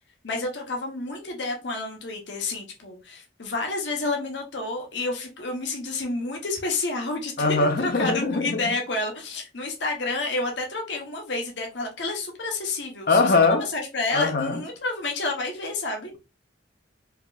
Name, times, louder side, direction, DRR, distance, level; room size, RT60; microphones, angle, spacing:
voice 1, 0.2-16.1, left 3 dB, 75° left, 1.0 m, -30 dB
voice 2, 7.4-8.6 13.1-13.7 14.1-14.6, left 3 dB, 55° left, 0.7 m, -21 dB
4.5 x 2.9 x 2.4 m
head